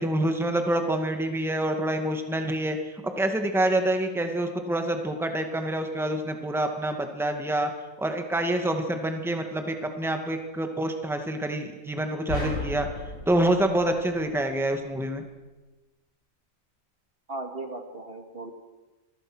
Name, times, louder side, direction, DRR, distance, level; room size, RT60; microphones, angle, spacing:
voice 1, 0.0-7.7 8.0-12.9 13.3-15.2, right 1 dB, ahead, 5 dB, 2.1 m, -27 dB
sound 1, 12.3-14.7, left 2 dB, 85° left, 6.4 m, -35 dB
voice 2, 17.3-18.5, right 2 dB, 45° right, 5 dB, 2.5 m, -37 dB
28.0 x 22.5 x 6.3 m, 1.1 s
omnidirectional pair, 1.4 m